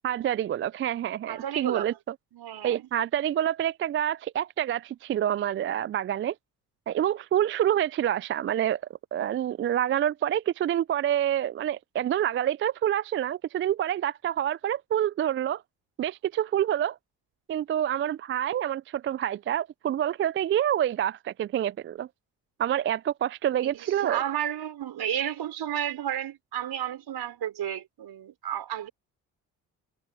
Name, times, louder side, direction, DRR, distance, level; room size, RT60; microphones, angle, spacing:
voice 1, 0.0-1.9 2.6-6.3 6.9-8.8 9.1-15.6 16.0-17.0 17.5-22.1 22.6-24.2, right 11 dB, 30° right, 0.4 m, -27 dB
voice 2, 1.3-2.0 2.3-2.9 23.6-28.9, right 10 dB, 60° right, 5.7 m, -32 dB
hypercardioid pair, 50°, 44 cm